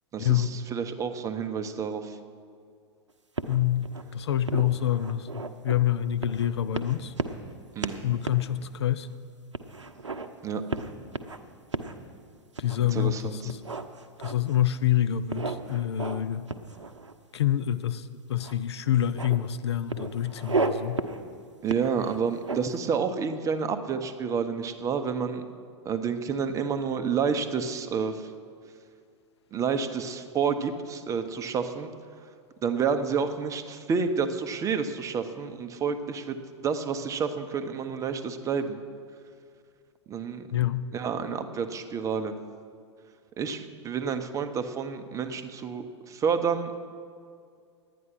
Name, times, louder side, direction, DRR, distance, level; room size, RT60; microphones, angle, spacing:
voice 1, 0.1-2.2 7.7-8.1 10.4-10.6 12.9-13.5 21.6-25.5 25.8-28.3 29.5-31.9 32.6-36.4 36.6-38.8 40.1-40.5 40.9-42.4 43.4-46.7, right 6 dB, 20° right, 9 dB, 0.7 m, -29 dB
sound 1, 3.4-4.0 4.5-5.8 6.2-6.5 6.7-7.5 7.8-8.4 8.9-9.0 9.5-10.3 10.7-11.4 11.7-11.9 12.6-13.0 13.5-14.6 15.3-16.2 16.5-17.4 18.4-18.5 18.9-19.4 19.9-20.7 21.0-21.2 21.7-22.8, right 4 dB, 80° right, 0.7 m, -33 dB
voice 2, 3.5-7.1 8.0-9.1 12.6-13.6 14.2-16.4 17.3-21.0 40.5-40.9, left 11 dB, 65° left, 13 dB, 0.5 m, -27 dB
11.0 x 9.2 x 6.1 m, 2.2 s
figure-of-eight pair, 95°, 15 cm